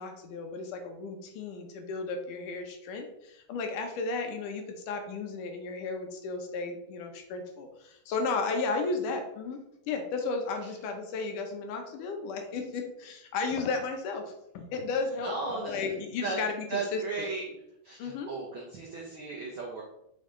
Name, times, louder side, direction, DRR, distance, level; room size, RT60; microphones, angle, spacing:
voice 1, 0.0-9.6 9.9-17.3 18.0-18.3, left 4 dB, 75° left, 4 dB, 2.3 m, -34 dB
voice 2, 15.2-15.7 16.2-16.4 16.7-17.4 17.8-19.8, right 4 dB, 75° right, -3 dB, 1.1 m, -35 dB
5.7 x 5.4 x 3.7 m, 0.80 s
omnidirectional pair, 4.0 m